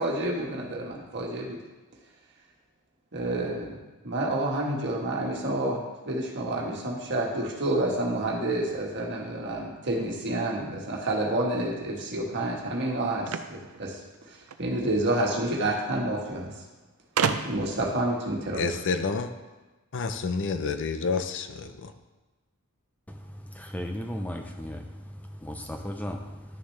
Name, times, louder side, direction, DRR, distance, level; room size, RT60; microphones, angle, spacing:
voice 1, 0.0-1.6 3.1-3.7 4.0-5.8 6.1-13.9 14.6-16.5 17.4-18.7, right 1 dB, 55° right, 0 dB, 1.5 m, -29 dB
sound 1, 13.2-14.7 15.8-15.9 16.1-16.2 17.2-17.8, right 6 dB, 70° right, 0.5 m, -29 dB
voice 2, 18.6-19.3 19.9-21.9, left 4 dB, 55° left, 9 dB, 0.6 m, -29 dB
voice 3, 23.5-25.1 25.4-26.2, equal, 5° left, 3 dB, 0.5 m, -35 dB
11.0 x 6.7 x 3.3 m, 1.2 s
head